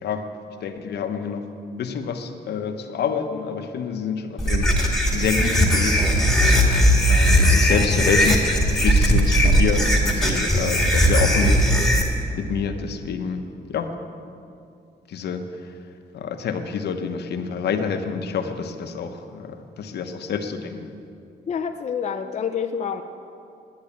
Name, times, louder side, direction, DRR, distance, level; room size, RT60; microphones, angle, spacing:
voice 1, 0.6-1.5 1.8-4.7 5.1-6.1 6.4-11.7 12.0-13.9 15.1-15.7 16.1-20.9, left 6 dB, 70° left, 7 dB, 1.1 m, -28 dB
sound 1, 4.4-12.0, equal, ahead, 2.2 m, -18 dB
voice 2, 21.5-23.0, left 7 dB, 40° left, 5 dB, 0.6 m, -27 dB
11.0 x 9.7 x 8.6 m, 2.6 s
cardioid pair, 115°, 17 cm